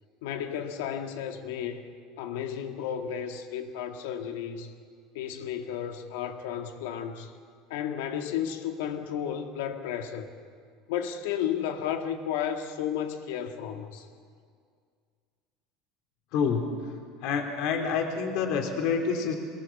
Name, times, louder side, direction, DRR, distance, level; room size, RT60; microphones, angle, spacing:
voice 1, 0.2-1.8 2.2-4.7 5.1-7.3 7.7-10.3 10.9-14.1, left 9 dB, 85° left, 5 dB, 2.0 m, -33 dB
voice 2, 16.3-16.7 17.2-19.3, left 6 dB, 55° left, 3 dB, 3.0 m, -27 dB
24.0 x 19.5 x 7.3 m, 2.1 s
cardioid pair, 160°, 0 cm